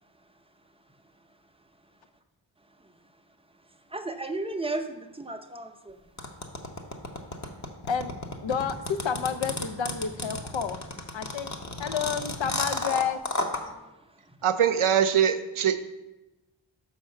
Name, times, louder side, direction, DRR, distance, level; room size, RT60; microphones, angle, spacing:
voice 1, 3.9-6.0 13.6-14.4, right 2 dB, 10° right, 6 dB, 0.6 m, -35 dB
sound 1, 6.2-13.6, left 2 dB, 35° left, 0.9 m, -32 dB
voice 2, 8.4-10.8 11.1-11.5 11.8-13.2, left 7 dB, 65° left, 10 dB, 0.6 m, -30 dB
voice 3, 14.4-15.8, right 8 dB, 80° right, 9 dB, 0.6 m, -22 dB
5.8 x 4.7 x 6.4 m, 1.0 s
wide cardioid pair, 70°, 49 cm